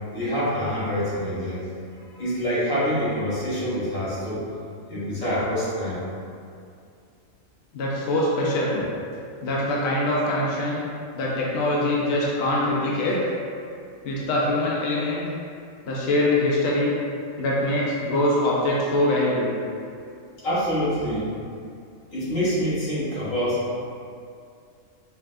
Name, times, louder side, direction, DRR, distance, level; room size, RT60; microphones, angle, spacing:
voice 1, 0.1-1.7 2.0-4.5 4.9-6.0 20.4-21.3 22.1-23.7, equal, 80° left, -10 dB, 1.8 m, -26 dB
voice 2, 7.7-8.8 9.4-10.8 11.1-13.3 14.0-15.2 15.9-17.0 17.4-19.6, left 1 dB, 60° left, -5 dB, 0.8 m, -23 dB
5.6 x 2.2 x 2.5 m, 2.4 s
omnidirectional pair, 1.4 m